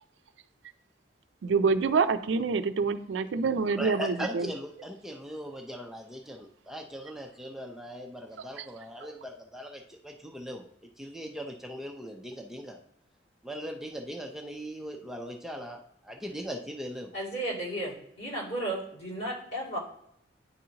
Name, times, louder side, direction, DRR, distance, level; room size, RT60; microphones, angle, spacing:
voice 1, 1.4-4.5 8.6-8.7 9.0-9.1, right 5 dB, 85° right, 10 dB, 0.4 m, -26 dB
voice 2, 3.8-10.7 11.0-12.8 13.4-17.1, equal, ahead, 1 dB, 0.5 m, -39 dB
voice 3, 17.1-19.8, right 1 dB, 65° left, -7 dB, 2.6 m, -34 dB
9.9 x 3.9 x 2.9 m, 0.74 s
head